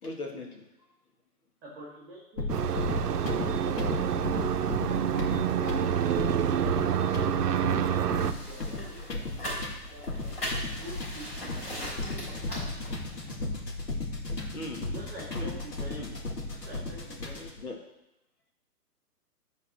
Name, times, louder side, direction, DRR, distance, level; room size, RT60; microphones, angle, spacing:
voice 1, 0.0-0.6 14.5-14.9 15.3-15.5 15.9-16.1 17.6-17.8, left 2 dB, 65° left, 2 dB, 1.8 m, -38 dB
voice 2, 1.6-3.6 7.2-9.5 9.9-10.5 10.8-12.6 14.9-16.0 16.5-17.5, right 1 dB, 10° right, -6 dB, 1.5 m, -47 dB
sound 1, 2.4-17.6, left 2 dB, 85° left, 2.1 m, -35 dB
sound 2, 2.5-8.3, right 9 dB, 75° right, 0.7 m, -27 dB
sound 3, 8.2-13.3, equal, 35° left, 3.5 m, -39 dB
10.5 x 4.2 x 6.2 m, 0.88 s
hypercardioid pair, 175°, 48 cm